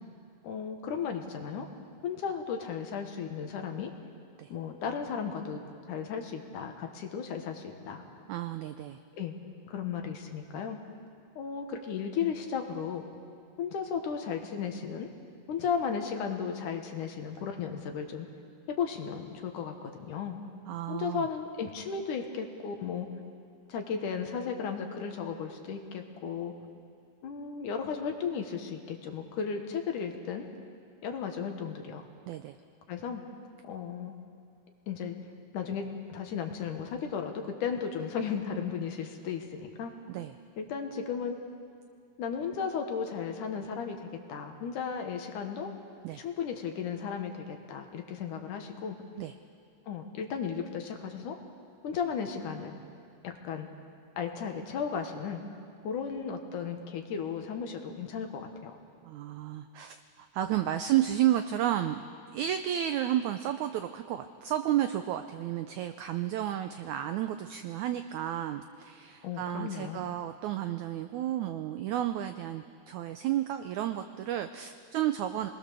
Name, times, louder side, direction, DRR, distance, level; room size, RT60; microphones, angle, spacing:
voice 1, 0.4-1.7 2.0-3.9 4.5-5.6 5.9-8.0 9.1-9.4 9.7-10.8 11.4-13.0 13.6-15.1 15.5-18.3 18.7-20.4 20.9-23.1 23.7-26.5 27.2-30.5 31.0-32.0 32.9-33.2 33.7-34.1 34.9-35.2 35.5-39.9 40.6-41.4 42.2-45.7 46.2-49.0 49.9-51.4 51.8-52.8 53.2-53.7 54.2-55.4 55.8-58.8 69.2-70.0, left 6 dB, 65° left, 4 dB, 2.7 m, -35 dB
voice 2, 8.3-9.0 20.7-21.3 32.3-32.6 40.1-40.3 46.0-46.2 49.2-49.3 59.0-62.0 62.3-75.5, right 12 dB, 90° right, 8 dB, 1.6 m, -32 dB
27.0 x 20.5 x 6.9 m, 2.3 s
omnidirectional pair, 4.2 m